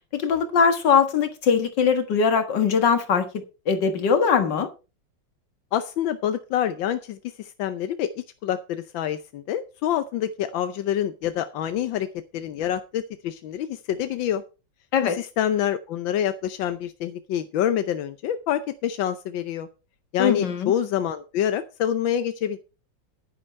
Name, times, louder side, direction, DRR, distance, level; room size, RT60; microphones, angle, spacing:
voice 1, 0.1-4.7 14.9-15.2 20.2-20.7, left 6 dB, 70° left, 2.2 m, -21 dB
voice 2, 5.7-12.1 12.3-14.4 15.0-19.7 20.1-22.6, left 10 dB, 90° left, 1.5 m, -27 dB
11.5 x 9.7 x 4.3 m
omnidirectional pair, 2.0 m